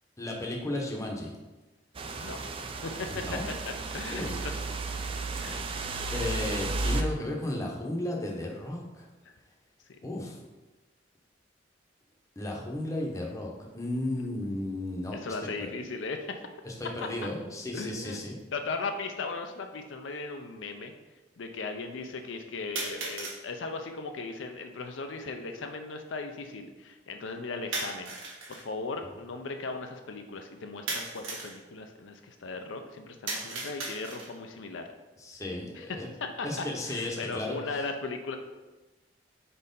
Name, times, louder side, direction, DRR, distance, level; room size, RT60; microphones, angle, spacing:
voice 1, 0.2-1.3 3.1-3.4 4.1-4.4 6.1-9.1 10.0-10.4 12.4-15.2 15.4-15.7 16.6-18.3 35.2-36.1 36.4-37.6, left 1 dB, 15° left, 0 dB, 0.7 m, -34 dB
sound 1, 1.9-7.0, right 3 dB, 30° right, 0.3 m, -33 dB
voice 2, 2.8-3.4 3.6-4.7 5.4-5.7 9.9-10.0 15.1-16.4 17.7-18.2 18.5-20.9 21.4-28.1 28.5-34.9 35.7-38.4, left 3 dB, 70° left, 5 dB, 0.5 m, -37 dB
sound 2, 18.4-18.5 19.5-19.6 22.8-23.4 27.7-28.6 30.9-31.6 33.3-34.4, right 3 dB, 80° right, 1.3 m, -36 dB
4.3 x 4.2 x 5.2 m, 1.2 s
head